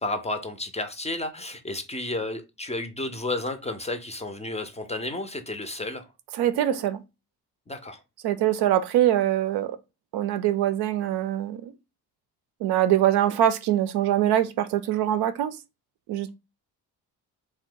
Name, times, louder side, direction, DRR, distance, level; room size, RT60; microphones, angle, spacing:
voice 1, 0.0-6.1 7.7-8.0, left 2 dB, 15° left, 0.4 m, -32 dB
voice 2, 6.4-7.0 8.2-9.8 10.1-11.7 12.6-15.6 16.1-16.3, right 12 dB, 70° right, 0.5 m, -23 dB
2.7 x 2.1 x 3.7 m
supercardioid pair, 65°, 41 cm